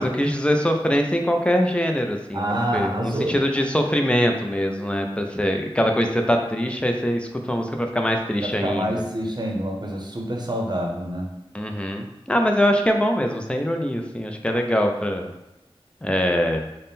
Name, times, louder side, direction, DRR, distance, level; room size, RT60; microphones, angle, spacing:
voice 1, 0.0-9.0 11.5-15.3 16.0-16.6, equal, 10° left, 3 dB, 0.5 m, -23 dB
voice 2, 2.3-3.4 8.4-11.3, right 1 dB, 45° right, 0 dB, 0.8 m, -27 dB
3.5 x 2.2 x 4.1 m, 0.91 s
wide cardioid pair, 45°, 10 cm